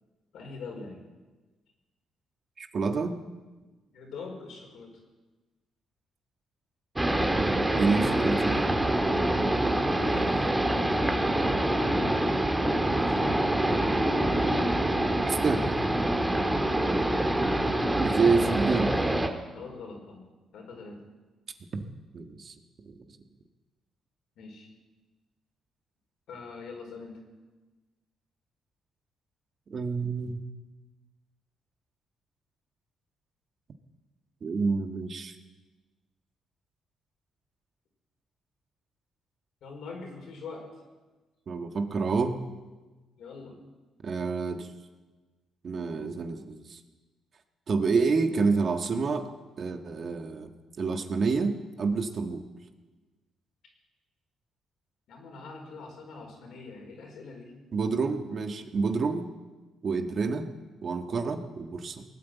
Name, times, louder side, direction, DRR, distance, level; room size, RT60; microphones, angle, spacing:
voice 1, 0.3-1.0 3.9-4.9 9.9-12.2 12.6-13.5 16.5-16.8 19.5-20.2 20.5-21.0 24.4-24.7 26.3-27.2 39.6-40.7 43.2-43.5 55.1-57.5, left 3 dB, 75° left, 1 dB, 4.7 m, -43 dB
voice 2, 2.6-3.2 7.4-8.7 15.2-15.7 18.0-19.0 21.7-21.8 22.1-22.5 22.8-23.0 29.7-30.4 34.4-35.3 41.5-42.4 44.0-44.7 45.6-46.8 47.7-49.3 49.6-50.5 50.8-52.4 57.7-59.3 59.8-60.5 60.8-62.0, right 4 dB, 50° right, 6 dB, 1.5 m, -28 dB
sound 1, 7.0-19.3, right 1 dB, 10° right, 1.7 m, -26 dB
19.0 x 9.2 x 8.3 m, 1.2 s
cardioid pair, 90°, 0 cm